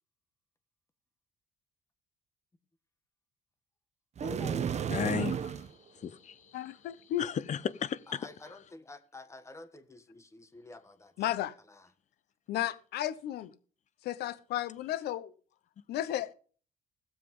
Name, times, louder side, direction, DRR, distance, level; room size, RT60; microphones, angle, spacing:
voice 1, 4.2-5.0 8.1-11.3 11.7-11.9, left 2 dB, 15° left, 1.5 m, -48 dB
sound 1, 4.2-5.7, right 8 dB, 40° right, 1.0 m, -32 dB
voice 2, 4.9-5.7 6.0-6.4 7.2-8.3, left 8 dB, 45° left, 0.8 m, -34 dB
voice 3, 6.5-7.2 11.2-11.5 12.5-13.5 14.0-15.3 15.9-16.3, left 12 dB, 75° left, 0.9 m, -33 dB
16.0 x 7.5 x 5.4 m
cardioid pair, 110°, 17 cm